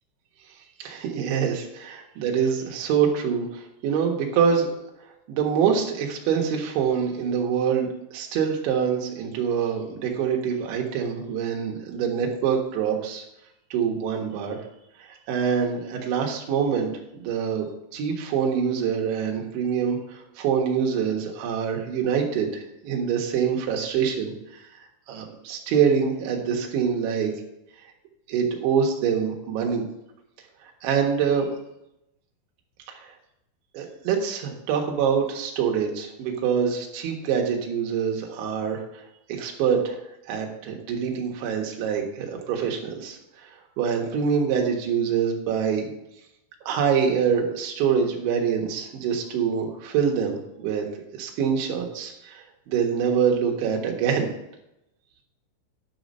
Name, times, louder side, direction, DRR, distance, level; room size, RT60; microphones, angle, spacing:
voice 1, 0.8-4.7 5.3-13.2 13.7-14.6 15.0-17.7 17.9-24.7 25.1-27.3 28.3-29.8 30.6-31.5 32.9-33.0 33.7-40.0 40.3-45.9 46.7-54.3, right 7 dB, 75° right, 1 dB, 3.7 m, -25 dB
11.5 x 5.9 x 5.4 m, 0.85 s
omnidirectional pair, 5.7 m